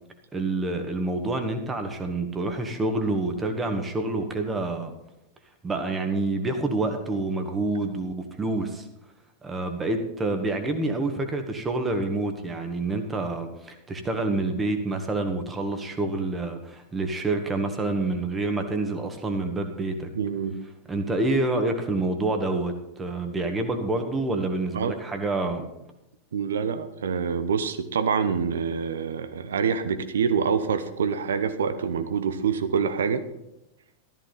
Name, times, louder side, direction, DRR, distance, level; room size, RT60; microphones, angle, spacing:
voice 1, 0.3-4.9 5.6-8.9 9.4-20.1 20.9-25.7, right 2 dB, 15° right, 6 dB, 1.8 m, -27 dB
voice 2, 20.1-20.6 24.7-24.9 26.3-33.3, right 6 dB, 65° right, 10 dB, 1.1 m, -26 dB
13.5 x 13.0 x 4.1 m, 0.86 s
figure-of-eight pair, 90°, 0 cm